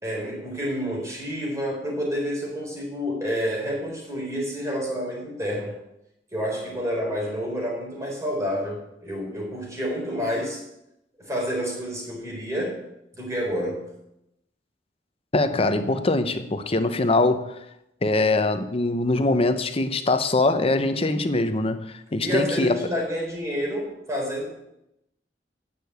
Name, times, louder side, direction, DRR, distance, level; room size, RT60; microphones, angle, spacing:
voice 1, 0.0-5.7 6.3-10.6 11.2-12.8 13.2-13.9 22.2-24.5, equal, 15° right, -2 dB, 4.3 m, -29 dB
voice 2, 15.3-17.6 18.0-21.8 22.1-22.9, left 2 dB, 35° left, 9 dB, 0.8 m, -22 dB
9.9 x 6.8 x 7.9 m, 0.83 s
head